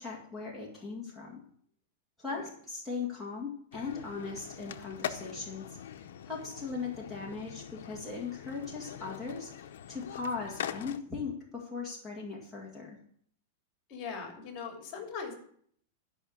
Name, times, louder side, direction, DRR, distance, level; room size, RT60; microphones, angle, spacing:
voice 1, 0.0-1.4 2.2-13.0, left 4 dB, ahead, -6 dB, 2.0 m, -39 dB
sound 1, 3.7-11.0, left 9 dB, 75° left, 0.8 m, -43 dB
voice 2, 13.9-15.3, left 5 dB, 35° left, 3 dB, 2.9 m, -40 dB
12.5 x 5.7 x 6.5 m, 0.62 s
supercardioid pair, 155°, 0 cm